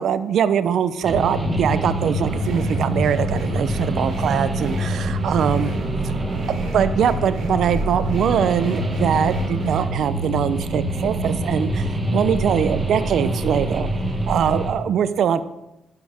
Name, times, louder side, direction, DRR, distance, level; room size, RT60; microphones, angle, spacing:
voice 1, 0.0-5.8 6.0-6.1 6.6-13.9 14.3-15.4, right 8 dB, 70° right, 13 dB, 0.7 m, -22 dB
sound 1, 1.0-14.7, right 1 dB, 20° right, 1.8 m, -25 dB
sound 2, 1.8-9.8, right 3 dB, 90° right, 3.6 m, -37 dB
11.5 x 9.5 x 3.6 m, 0.90 s
cardioid pair, 90°, 0 cm